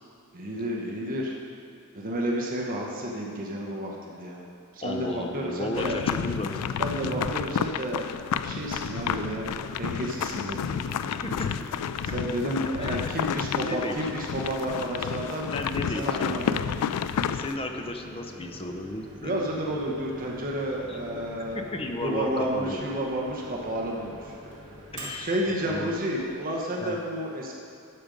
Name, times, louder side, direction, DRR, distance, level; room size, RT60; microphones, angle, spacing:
voice 1, 0.3-1.4 1.9-4.4 4.7-6.0 6.8-8.1 8.4-9.5 9.8-10.8 12.1-15.5 15.9-16.7 19.2-21.6 22.0-24.4 25.2-27.5, right 1 dB, 40° right, -2 dB, 1.0 m, -31 dB
voice 2, 4.8-6.7 7.1-7.2 10.4-10.5 11.1-11.6 12.8-13.1 13.5-14.2 15.5-16.4 17.3-19.3 20.9-21.0 21.5-22.9 24.9-26.0 26.8-27.0, left 1 dB, 25° left, 5 dB, 0.6 m, -34 dB
sound 1, 5.7-17.6, left 8 dB, 90° left, 0.3 m, -30 dB
Microwave oven, 7.8-26.6, equal, 70° right, 2.0 m, -46 dB
12.0 x 5.2 x 5.2 m, 2.6 s
head